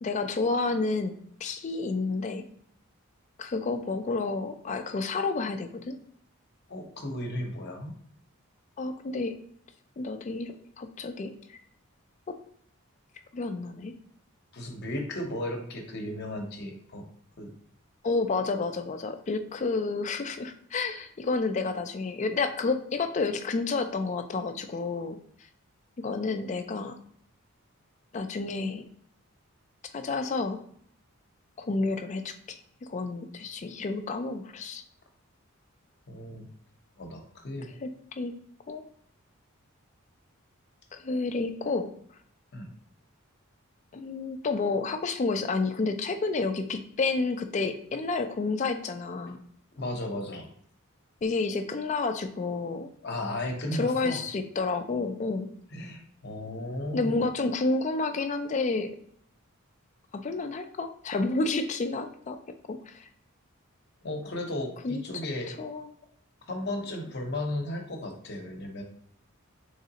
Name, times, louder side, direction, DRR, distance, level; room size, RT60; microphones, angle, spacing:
voice 1, 0.0-1.1 1.4-2.4 3.4-6.0 8.8-9.3 10.0-11.6 13.3-13.9 18.0-25.2 26.0-27.0 28.1-28.9 29.9-30.6 31.6-34.8 37.8-38.3 38.7-38.8 40.9-41.9 43.9-49.4 51.2-52.9 53.7-55.5 56.9-58.9 60.1-62.4 62.7-63.1 64.8-65.0 65.5-65.9, left 3 dB, 35° left, 7 dB, 0.3 m, -30 dB
voice 2, 6.7-7.9 14.5-17.0 17.4-17.5 36.1-36.5 37.0-37.7 42.5-42.7 49.8-50.5 53.0-54.2 55.7-57.2 64.0-65.5 66.5-68.8, left 1 dB, 50° left, 3 dB, 0.8 m, -35 dB
3.8 x 3.2 x 2.8 m, 0.63 s
head